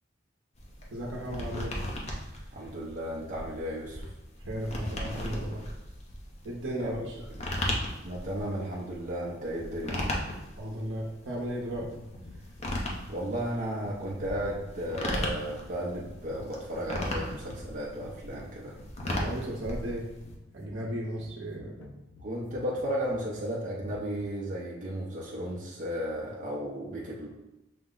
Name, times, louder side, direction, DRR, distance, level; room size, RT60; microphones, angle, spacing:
sound 1, 0.6-20.3, left 1 dB, 35° left, 0.7 m, -36 dB
voice 1, 0.9-1.7 4.4-5.6 6.4-7.2 10.6-11.9 19.0-20.0 20.5-21.9, equal, 75° right, -3 dB, 0.8 m, -35 dB
voice 2, 2.5-4.0 6.8-7.0 7.3-7.5 8.0-10.2 13.1-18.8 22.2-27.3, equal, 45° right, -5 dB, 0.6 m, -34 dB
sound 2, 11.7-24.4, left 2 dB, 75° left, 0.5 m, -50 dB
5.8 x 2.1 x 3.7 m, 0.97 s
head